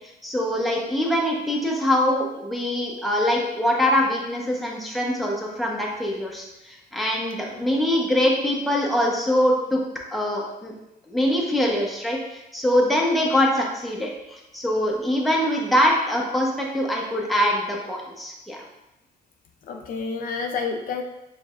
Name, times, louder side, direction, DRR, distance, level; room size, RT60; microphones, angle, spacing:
voice 1, 0.2-9.8 10.1-10.7 11.1-18.6, left 1 dB, ahead, -2 dB, 0.8 m, -23 dB
voice 2, 19.7-21.0, left 5 dB, 55° left, 3 dB, 0.4 m, -29 dB
4.6 x 3.2 x 2.4 m, 0.91 s
cardioid pair, 110°, 17 cm